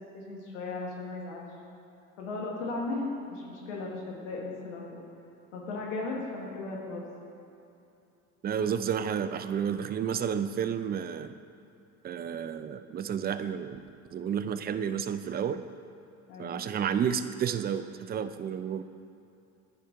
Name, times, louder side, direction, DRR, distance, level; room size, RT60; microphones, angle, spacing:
voice 1, 0.1-1.5 2.2-5.0 5.5-7.0 16.3-16.6, left 3 dB, 90° left, -2 dB, 1.4 m, -36 dB
voice 2, 8.4-11.4 12.0-13.8 14.1-15.6 16.4-18.8, right 8 dB, 30° right, 11 dB, 0.4 m, -31 dB
9.9 x 4.7 x 3.6 m, 2.7 s
hypercardioid pair, 75°, 35 cm